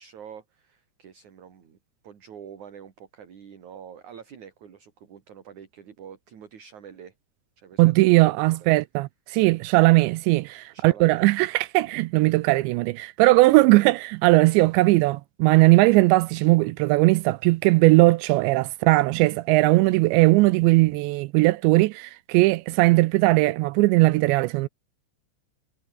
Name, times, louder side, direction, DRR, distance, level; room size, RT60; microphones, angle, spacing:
voice 1, 0.0-1.8 2.0-7.1 7.6-8.7 10.7-11.2, right 8 dB, 45° right, 3.6 m, -46 dB
voice 2, 7.8-24.7, right 21 dB, 85° right, 2.6 m, -19 dB
omnidirectional pair, 5.6 m